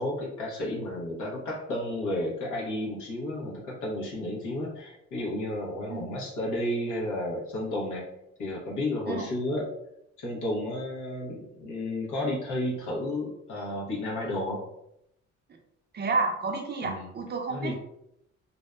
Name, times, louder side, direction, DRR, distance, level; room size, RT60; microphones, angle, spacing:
voice 1, 0.0-8.0 8.4-9.6 10.2-14.6 16.8-17.1 17.5-17.8, left 1 dB, 80° left, -4 dB, 0.9 m, -32 dB
voice 2, 15.9-17.8, right 3 dB, 35° right, 3 dB, 0.6 m, -30 dB
2.6 x 2.1 x 2.3 m, 0.79 s
cardioid pair, 90°, 30 cm